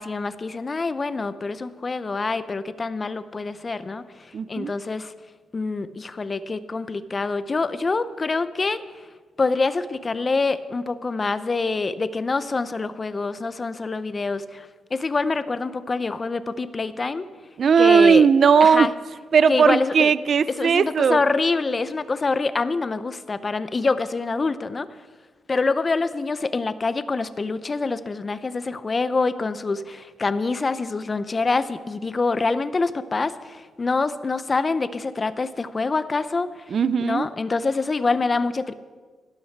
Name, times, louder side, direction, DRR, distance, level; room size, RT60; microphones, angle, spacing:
voice 1, 0.0-5.1 5.5-8.8 9.4-17.3 17.8-18.3 18.6-18.9 19.5-20.1 20.6-24.9 25.5-36.5 37.0-38.7, left 3 dB, 35° left, 14 dB, 0.7 m, -25 dB
voice 2, 4.3-4.7 17.6-18.9 19.3-21.2 36.7-37.3, right 6 dB, 55° right, 17 dB, 0.4 m, -17 dB
16.5 x 12.5 x 4.6 m, 1.5 s
cardioid pair, 90°, 0 cm